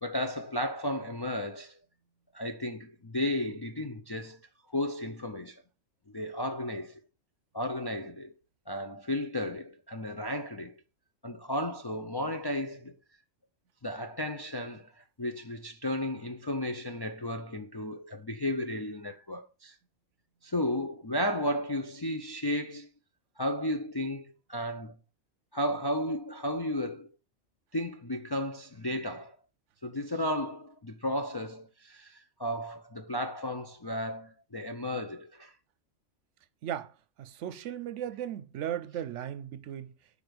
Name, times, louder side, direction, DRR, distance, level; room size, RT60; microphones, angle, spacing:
voice 1, 0.0-1.8 2.3-4.4 4.7-5.6 6.1-7.0 7.5-8.3 8.7-10.7 11.2-12.9 13.8-19.8 20.4-22.9 23.4-24.9 25.5-27.1 27.7-29.4 29.8-35.5, left 1 dB, 35° left, 0.4 m, -34 dB
voice 2, 36.6-36.9 37.2-39.9, right 10 dB, 80° right, 0.9 m, -36 dB
5.1 x 5.0 x 6.1 m
omnidirectional pair, 1.3 m